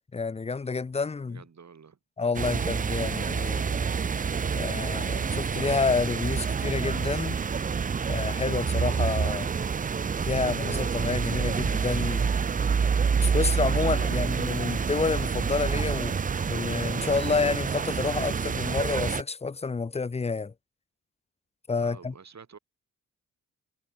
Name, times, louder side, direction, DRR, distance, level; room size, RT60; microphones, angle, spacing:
voice 1, 0.1-1.4 2.2-3.8 4.5-7.4 8.1-9.5 10.2-12.3 13.2-16.2 16.5-20.5 21.7-22.1, left 4 dB, 20° left, 0.6 m, -29 dB
voice 2, 1.2-2.0 14.0-14.2 21.8-22.6, right 6 dB, 55° right, 6.1 m, -49 dB
sound 1, 2.3-19.2, right 6 dB, 25° right, 0.4 m, -27 dB
cardioid pair, 65°, 32 cm